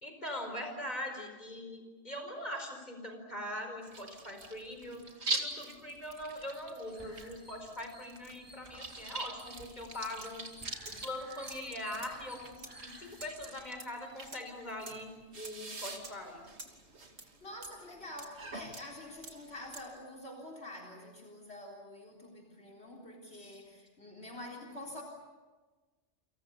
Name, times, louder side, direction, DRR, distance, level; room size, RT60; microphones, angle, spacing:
voice 1, 0.0-5.0 5.3-10.4 10.8-15.1 15.3-16.4 23.4-23.5, left 1 dB, 35° left, 5 dB, 5.0 m, -42 dB
sound 1, 3.8-19.8, right 2 dB, 65° right, 2.8 m, -44 dB
sound 2, 6.8-13.5, equal, 20° right, 5.6 m, -56 dB
sound 3, 10.2-10.3 10.6-11.1 11.5-20.0, right 3 dB, 80° right, 2.9 m, -50 dB
voice 2, 17.4-25.0, left 1 dB, 60° left, 3 dB, 4.1 m, -47 dB
30.0 x 25.5 x 7.0 m, 1.3 s
omnidirectional pair, 1.2 m